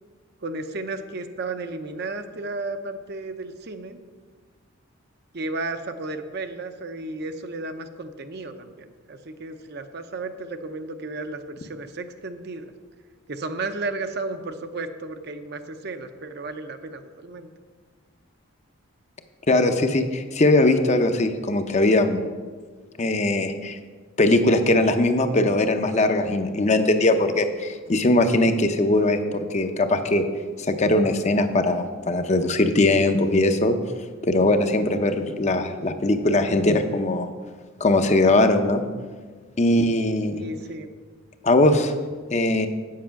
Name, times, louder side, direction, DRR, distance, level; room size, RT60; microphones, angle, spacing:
voice 1, 0.4-4.0 5.3-12.7 13.3-17.5 40.3-40.9, right 3 dB, 50° right, 8 dB, 0.6 m, -33 dB
voice 2, 19.5-22.2 23.0-23.8 24.2-30.3 30.6-33.8 34.2-37.3 37.8-38.8 39.6-40.4 41.4-41.9 42.3-42.7, left 2 dB, 35° left, 7 dB, 0.6 m, -20 dB
8.4 x 7.6 x 5.8 m, 1.5 s
head